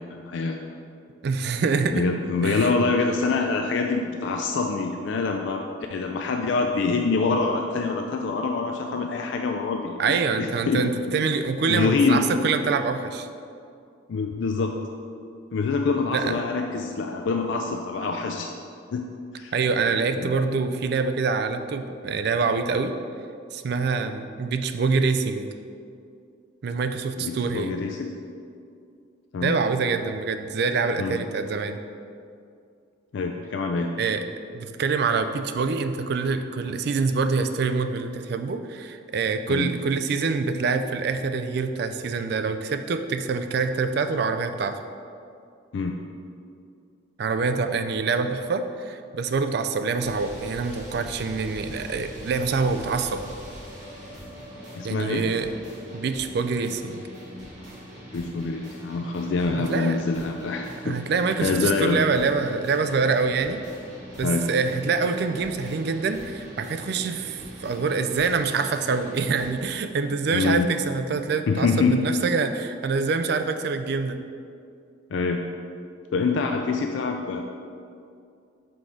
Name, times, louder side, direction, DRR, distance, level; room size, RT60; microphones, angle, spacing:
voice 1, 0.1-0.6 1.9-5.6 5.9-10.0 10.4-11.2 11.7-12.2 14.1-14.7 15.5-18.5 18.9-19.0 19.3-19.5 20.2-20.4 27.2-28.1 29.3-29.5 31.0-31.2 33.1-33.9 39.5-39.7 45.7-45.9 54.7-55.2 58.1-62.0 64.2-64.5 70.3-70.7 71.5-72.0 75.1-75.4 76.1-77.4, left 4 dB, 65° left, 3 dB, 0.3 m, -25 dB
voice 2, 1.2-2.0 2.4-2.7 10.0-13.3 16.1-16.4 19.5-22.9 23.5-25.5 26.6-27.7 29.4-31.8 34.0-34.2 34.5-44.8 47.2-53.2 54.8-55.5 55.9-57.1 59.6-60.0 60.8-63.6 64.2-74.2, right 4 dB, 55° right, 8 dB, 0.3 m, -25 dB
sound 1, 50.0-69.6, equal, 35° right, 1.5 m, -42 dB
5.9 x 3.8 x 4.7 m, 2.4 s
head